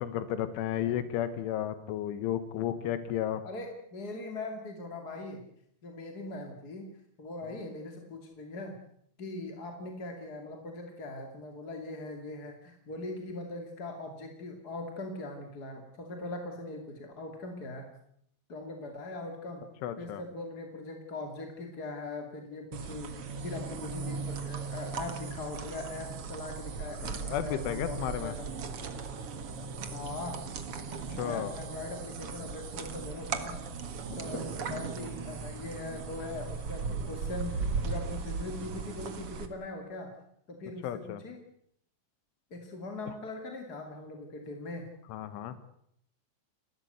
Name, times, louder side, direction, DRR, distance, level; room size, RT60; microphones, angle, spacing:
voice 1, 0.0-3.4 19.8-20.2 27.0-28.3 31.2-31.5 34.7-34.8 40.8-41.2 45.1-45.6, left 11 dB, 85° left, 12 dB, 3.8 m, -33 dB
voice 2, 3.4-5.4 5.8-6.9 7.2-8.8 9.2-17.9 18.5-19.6 20.0-28.5 29.9-30.4 31.2-33.6 34.1-40.1 40.5-41.4 42.5-44.9, left 2 dB, 30° left, 3 dB, 2.0 m, -41 dB
sound 1, 22.7-39.5, right 5 dB, 65° right, 1.4 m, -37 dB
30.0 x 13.0 x 8.1 m, 0.71 s
omnidirectional pair, 5.4 m